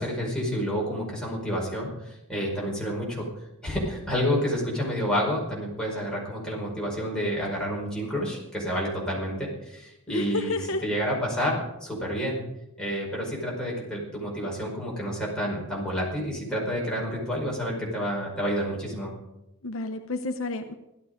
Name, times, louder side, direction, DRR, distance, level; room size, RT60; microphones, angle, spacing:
voice 1, 0.0-3.3 3.6-12.4 12.8-19.1, equal, 5° left, -4 dB, 5.2 m, -29 dB
voice 2, 10.1-10.8 19.6-20.7, left 2 dB, 65° left, 7 dB, 1.0 m, -30 dB
16.5 x 12.5 x 5.2 m, 0.91 s
head